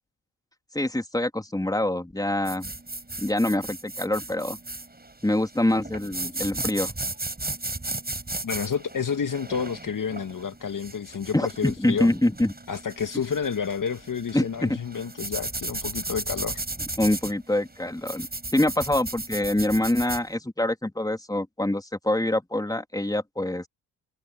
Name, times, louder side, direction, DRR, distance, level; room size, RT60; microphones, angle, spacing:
voice 1, 0.7-2.7 3.2-4.6 5.2-6.9 11.3-12.5 14.3-14.8 17.0-18.3 18.5-23.6, left 1 dB, 5° left, 3.6 m, -25 dB
sound 1, 2.4-20.2, right 2 dB, 20° right, 7.9 m, -35 dB
voice 2, 8.4-12.1 12.7-16.6, left 6 dB, 40° left, 2.2 m, -30 dB
hypercardioid pair, 45°, 49 cm